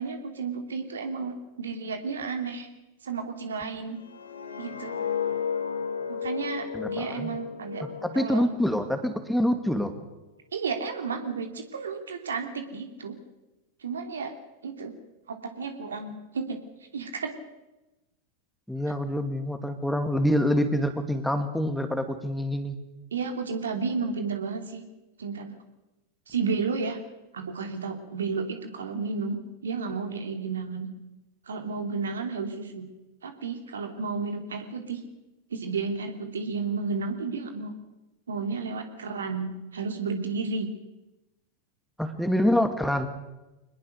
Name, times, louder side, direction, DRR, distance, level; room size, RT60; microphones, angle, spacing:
voice 1, 0.0-2.7 3.0-4.0 4.6-4.9 6.1-7.8 8.1-8.5 10.5-13.1 13.8-14.3 14.6-14.9 15.3-16.6 16.9-17.3 23.1-24.8 25.2-25.5 26.3-27.0 27.3-29.4 29.6-30.9 31.5-32.8 33.2-35.0 35.5-37.7 38.3-40.7, right 4 dB, 70° right, 6 dB, 2.8 m, -32 dB
sound 1, 4.0-9.0 9.4-9.7, left 7 dB, 80° left, 3.3 m, -33 dB
voice 2, 6.7-7.4 8.0-9.9 18.7-22.7 42.0-43.1, equal, ahead, 7 dB, 2.4 m, -26 dB
24.5 x 20.5 x 6.7 m, 1.0 s
figure-of-eight pair, 90°, 0 cm